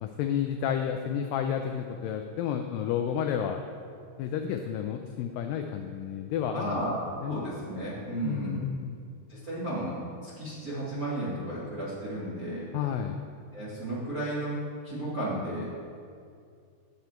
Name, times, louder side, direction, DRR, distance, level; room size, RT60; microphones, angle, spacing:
voice 1, 0.0-3.6 4.2-6.8 7.2-7.4 8.2-9.0 12.7-13.2, left 8 dB, 85° left, 5 dB, 1.9 m, -31 dB
voice 2, 6.5-8.6 9.3-12.7 13.5-14.6 14.8-15.6, right 1 dB, 40° right, -9 dB, 1.3 m, -33 dB
9.5 x 8.1 x 4.3 m, 2.3 s
omnidirectional pair, 4.4 m